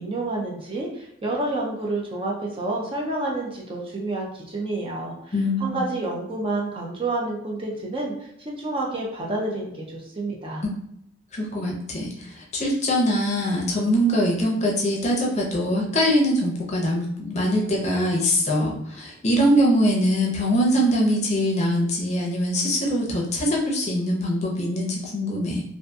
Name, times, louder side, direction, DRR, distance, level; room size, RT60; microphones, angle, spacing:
voice 1, 0.0-5.3 5.6-10.6, right 2 dB, 30° right, -2 dB, 0.5 m, -29 dB
voice 2, 5.3-5.8 10.6-10.7 11.3-25.6, equal, 35° left, -2 dB, 0.6 m, -23 dB
2.6 x 2.5 x 2.3 m, 0.75 s
head